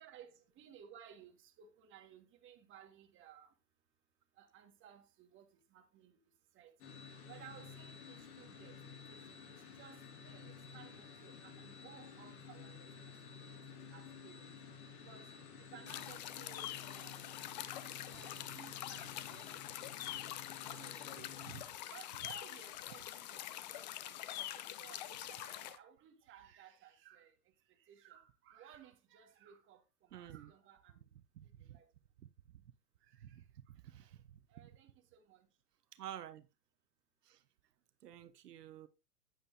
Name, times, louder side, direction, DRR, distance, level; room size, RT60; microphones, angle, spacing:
voice 1, 0.0-3.5 4.4-6.1 6.5-6.7 7.3-8.8 9.1-14.6 14.9-17.4 18.1-19.6 20.1-20.2 20.6-27.3 27.8-31.1 31.7-31.9 33.1-33.4 34.5-35.5, right 9 dB, 25° right, 1.6 m, -59 dB
sound 1, 6.8-21.6, left 6 dB, 65° left, 2.3 m, -53 dB
sound 2, 15.9-25.8, left 13 dB, 30° left, 0.4 m, -45 dB
voice 2, 30.1-30.5 31.4-31.8 32.5-32.6 33.2-33.4 33.8-34.4 35.9-36.5 37.2-37.4 38.0-38.9, right 11 dB, 80° right, 0.9 m, -50 dB
8.9 x 8.9 x 2.7 m
hypercardioid pair, 125°, 47 cm